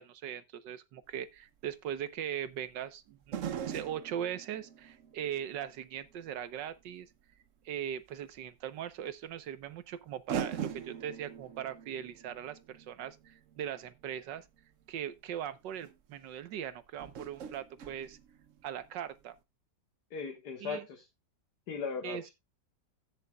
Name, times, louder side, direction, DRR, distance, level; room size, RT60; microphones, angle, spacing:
voice 1, 0.0-3.4 3.6-7.1 7.6-14.4 14.9-18.2 18.6-19.3 20.6-20.8 22.0-22.2, right 9 dB, 75° right, 1.6 m, -40 dB
sound 1, 1.1-1.2 3.3-6.2 6.7-6.8 8.3-8.4 9.6-9.7 10.3-14.4 15.3-15.4 15.8-15.9 17.0-18.9 19.2-19.3, right 8 dB, 60° right, 0.9 m, -42 dB
voice 2, 20.1-21.0 21.7-22.3, left 5 dB, 60° left, 2.0 m, -38 dB
16.0 x 7.0 x 2.3 m
omnidirectional pair, 1.9 m